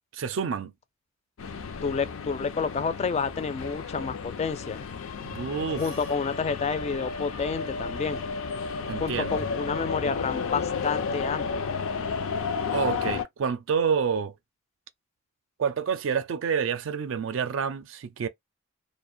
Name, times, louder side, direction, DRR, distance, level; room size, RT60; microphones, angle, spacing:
voice 1, 0.1-0.7 5.2-5.8 8.9-9.4 12.7-14.3 15.6-18.3, right 6 dB, 70° right, 0.4 m, -28 dB
sound 1, 1.4-13.2, left 5 dB, 90° left, 0.5 m, -32 dB
voice 2, 1.8-4.9 5.7-8.2 9.0-11.7, left 5 dB, 35° left, 0.3 m, -29 dB
2.4 x 2.1 x 2.5 m
head